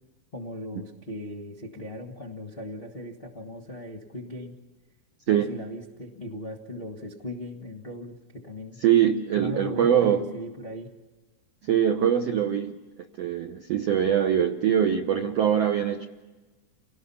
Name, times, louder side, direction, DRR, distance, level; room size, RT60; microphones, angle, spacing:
voice 1, 0.3-4.5 5.3-8.8 9.3-10.9, left 1 dB, 35° left, -1 dB, 0.9 m, -38 dB
voice 2, 8.8-10.3 11.6-12.8 13.2-16.1, right 9 dB, 70° right, 5 dB, 1.5 m, -23 dB
29.5 x 18.5 x 5.7 m, 1.2 s
omnidirectional pair, 4.1 m